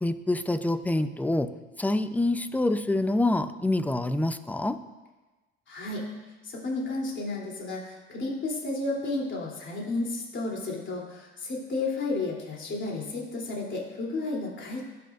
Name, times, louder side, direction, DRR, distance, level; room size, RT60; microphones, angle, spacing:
voice 1, 0.0-1.5 1.8-4.8, left 2 dB, 5° left, 11 dB, 0.6 m, -26 dB
voice 2, 5.7-6.1 6.4-14.8, left 2 dB, 35° left, -3 dB, 3.3 m, -32 dB
19.0 x 7.0 x 2.6 m, 1.2 s
hypercardioid pair, 65°, 32 cm